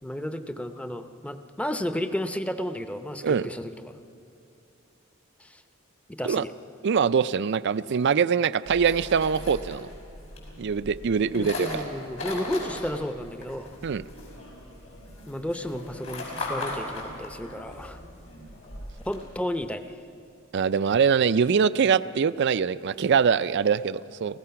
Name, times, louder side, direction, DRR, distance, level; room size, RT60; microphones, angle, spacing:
voice 1, 0.0-3.9 5.4-5.6 6.1-6.5 11.3-13.8 15.3-18.0 19.1-19.8, left 1 dB, 5° left, 9 dB, 0.7 m, -32 dB
voice 2, 6.8-9.9 10.6-11.8 13.8-14.0 20.5-24.4, right 6 dB, 55° right, 16 dB, 0.4 m, -23 dB
sound 1, 8.6-19.2, left 2 dB, 90° left, 6.0 m, -38 dB
29.5 x 16.0 x 5.8 m, 2.7 s
head